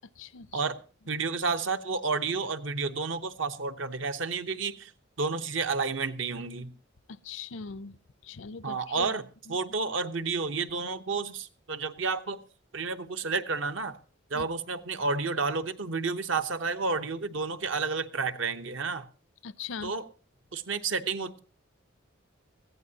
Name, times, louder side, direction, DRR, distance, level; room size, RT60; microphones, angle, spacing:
voice 1, 0.2-0.6 7.1-8.0 8.2-9.2 9.5-9.6 14.3-14.5 19.4-19.9, left 5 dB, 70° left, 17 dB, 0.5 m, -40 dB
voice 2, 1.1-4.9 5.2-6.7 8.6-9.2 9.5-12.4 12.7-13.9 14.3-19.1 19.8-20.0 20.5-21.4, right 4 dB, 70° right, 9 dB, 0.9 m, -31 dB
20.0 x 15.0 x 2.8 m, 0.38 s
head